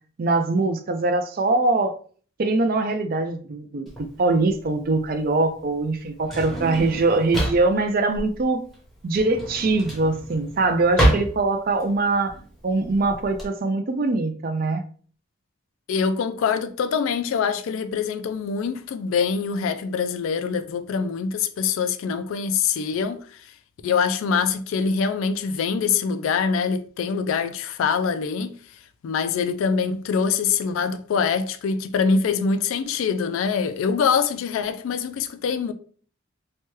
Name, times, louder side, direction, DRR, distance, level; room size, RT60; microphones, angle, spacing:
voice 1, 0.2-2.0 2.4-8.6 9.0-12.4 12.6-14.8, right 3 dB, 45° right, 0.4 m, -22 dB
Drawer open or close, 3.9-13.5, right 1 dB, ahead, 0.8 m, -28 dB
voice 2, 15.9-23.4 23.8-28.6 29.0-35.7, left 6 dB, 75° left, 0.3 m, -24 dB
2.9 x 2.2 x 3.0 m
head